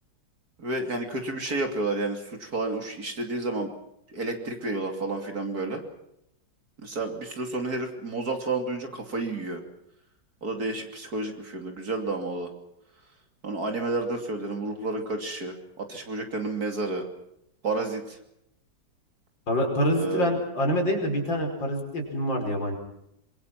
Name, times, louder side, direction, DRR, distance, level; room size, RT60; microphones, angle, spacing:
voice 1, 0.6-3.7 4.1-5.8 6.8-9.6 10.4-12.5 13.4-17.1 17.6-18.2 19.9-20.3, right 2 dB, 55° right, 4 dB, 3.4 m, -30 dB
voice 2, 19.5-22.8, equal, 85° left, 3 dB, 5.6 m, -26 dB
26.0 x 23.0 x 5.9 m, 0.79 s
omnidirectional pair, 2.0 m